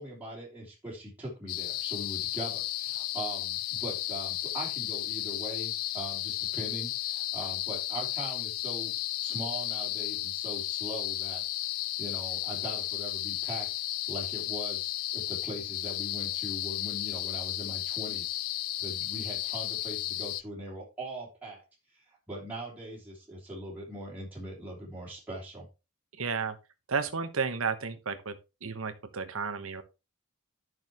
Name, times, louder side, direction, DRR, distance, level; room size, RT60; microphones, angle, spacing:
voice 1, 0.0-8.9 9.2-11.4 12.0-13.7 14.1-18.3 18.8-21.6 22.1-25.6, right 1 dB, 5° right, 3.3 m, -41 dB
sound 1, 1.5-20.4, left 15 dB, 80° left, 0.4 m, -34 dB
voice 2, 26.2-26.6 26.9-28.4 28.6-29.8, right 5 dB, 75° right, 1.1 m, -32 dB
11.0 x 6.4 x 3.0 m
head